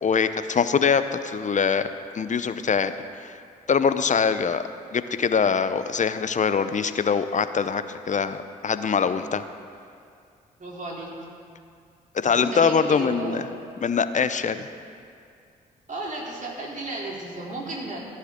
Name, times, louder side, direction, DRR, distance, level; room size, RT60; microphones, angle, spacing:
voice 1, 0.0-1.9 2.1-2.9 3.2-3.3 3.7-4.6 4.9-9.4 12.1-13.5 13.8-14.7, left 6 dB, 40° left, 12 dB, 0.7 m, -23 dB
voice 2, 10.6-11.2 12.2-13.4 15.9-18.0, right 2 dB, 40° right, -3 dB, 3.2 m, -34 dB
14.5 x 11.5 x 3.7 m, 2.3 s
hypercardioid pair, 40°, 20 cm